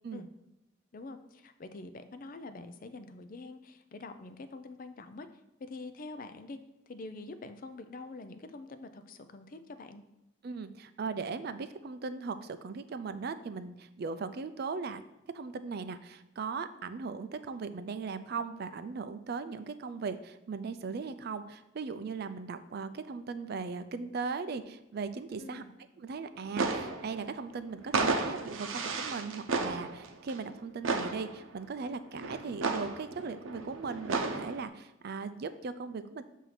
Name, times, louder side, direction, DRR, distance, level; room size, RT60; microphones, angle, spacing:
voice 1, 0.9-5.3 5.6-6.6 6.9-10.0 25.4-25.7, left 3 dB, 45° left, 9 dB, 0.4 m, -45 dB
voice 2, 10.4-15.0 15.3-25.6 26.0-36.2, right 4 dB, 50° right, 11 dB, 0.4 m, -38 dB
sound 1, 26.4-27.5 27.8-30.5 30.8-31.6 32.1-34.6, right 3 dB, 80° right, 0.7 m, -33 dB
7.9 x 2.7 x 5.8 m, 0.90 s
head